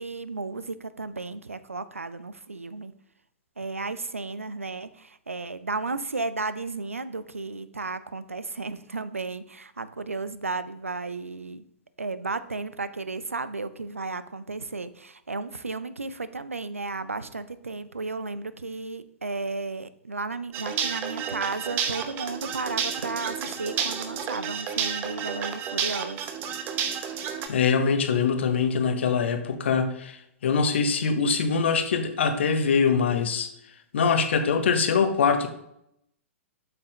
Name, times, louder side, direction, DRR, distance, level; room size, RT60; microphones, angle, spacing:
voice 1, 0.0-2.9 3.6-11.7 12.0-26.3, right 3 dB, 80° right, 0.5 m, -34 dB
sound 1, 20.5-27.5, right 7 dB, 25° right, 0.7 m, -31 dB
voice 2, 27.5-33.5 33.9-35.5, left 5 dB, 60° left, 0.9 m, -23 dB
7.8 x 5.8 x 3.2 m
figure-of-eight pair, 110°, 7 cm